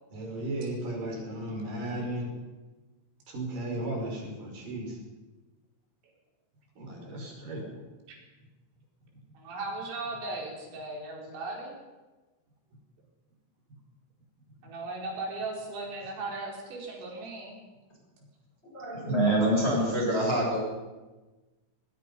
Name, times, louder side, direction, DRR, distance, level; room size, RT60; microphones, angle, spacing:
voice 1, 0.1-2.3 3.3-5.0 6.8-7.7, right 1 dB, 45° right, 1 dB, 6.5 m, -35 dB
voice 2, 9.4-11.8 14.6-17.6 20.0-20.1, right 2 dB, 80° right, -2 dB, 7.3 m, -37 dB
voice 3, 18.7-20.6, right 1 dB, 10° left, -3 dB, 6.4 m, -25 dB
22.5 x 22.0 x 5.5 m, 1.2 s
omnidirectional pair, 5.8 m